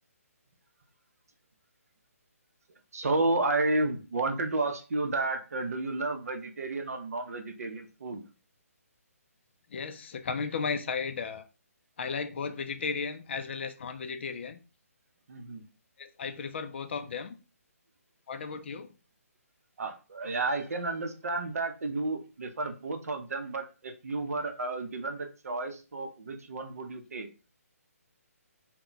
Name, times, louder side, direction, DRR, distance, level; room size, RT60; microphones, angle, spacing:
voice 1, 2.9-8.2 15.3-15.7 19.8-27.3, right 2 dB, 70° right, 0.6 m, -32 dB
voice 2, 9.7-11.4 12.0-14.6 16.0-17.3 18.3-18.9, left 5 dB, 45° left, 0.3 m, -35 dB
sound 1, 20.2-21.6, right 3 dB, 45° right, 1.0 m, -55 dB
2.2 x 2.1 x 3.8 m
hypercardioid pair, 155°, 8 cm